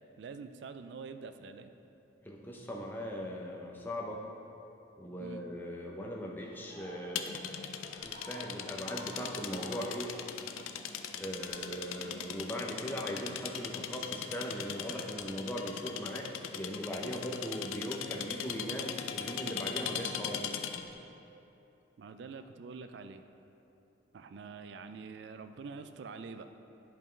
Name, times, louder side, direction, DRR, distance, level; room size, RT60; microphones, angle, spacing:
voice 1, 0.2-1.7 5.2-5.4 17.0-17.2 22.0-23.2 24.1-26.5, right 4 dB, 60° right, 9 dB, 0.3 m, -45 dB
voice 2, 2.2-4.2 5.0-7.6 8.0-10.1 11.2-16.3 16.5-20.6, equal, 10° left, -2 dB, 0.6 m, -39 dB
sound 1, 6.4-15.2, equal, 70° left, 1.5 m, -53 dB
sound 2, 7.1-20.9, left 8 dB, 85° left, 0.4 m, -39 dB
9.0 x 5.3 x 3.2 m, 3.0 s
head